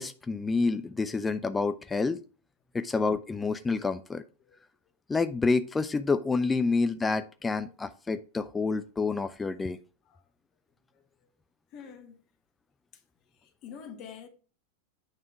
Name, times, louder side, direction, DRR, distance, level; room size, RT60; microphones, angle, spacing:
voice 1, 0.0-2.2 2.7-4.2 5.1-9.8, left 4 dB, 10° left, 0.4 m, -28 dB
voice 2, 11.7-12.2 12.9-13.0 13.4-14.3, left 7 dB, 40° left, 1.2 m, -46 dB
8.8 x 3.6 x 4.7 m
figure-of-eight pair, 90°, 0 cm